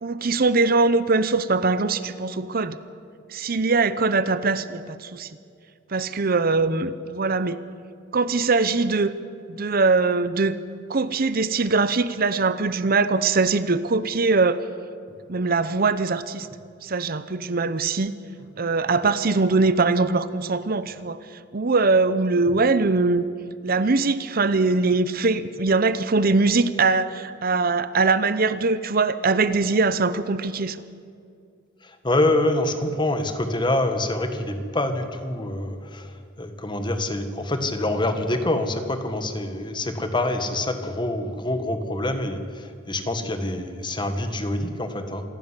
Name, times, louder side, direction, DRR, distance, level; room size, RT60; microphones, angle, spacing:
voice 1, 0.0-2.8 3.3-5.3 5.9-7.6 8.1-9.1 9.5-10.6 10.9-14.6 15.3-16.5 16.8-18.1 18.6-21.2 21.5-23.3 23.6-30.8, right 3 dB, 50° right, 14 dB, 0.8 m, -22 dB
voice 2, 31.8-45.2, left 1 dB, 25° left, 7 dB, 1.7 m, -26 dB
27.0 x 12.0 x 9.8 m, 2.3 s
head